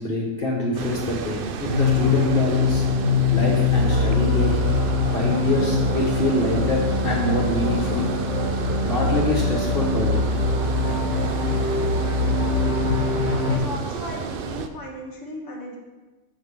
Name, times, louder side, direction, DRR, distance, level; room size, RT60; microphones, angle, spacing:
voice 1, 0.0-2.8 3.3-4.6 5.1-8.0 8.8-10.3, left 1 dB, 45° left, -2 dB, 1.2 m, -25 dB
Water, 0.7-14.7, right 7 dB, 70° right, 0.5 m, -32 dB
sound 1, 1.6-13.6, left 3 dB, 55° right, 1.8 m, -23 dB
voice 2, 13.4-15.8, left 1 dB, 15° left, -2 dB, 1.1 m, -36 dB
5.7 x 5.3 x 6.5 m, 1.2 s
omnidirectional pair, 1.4 m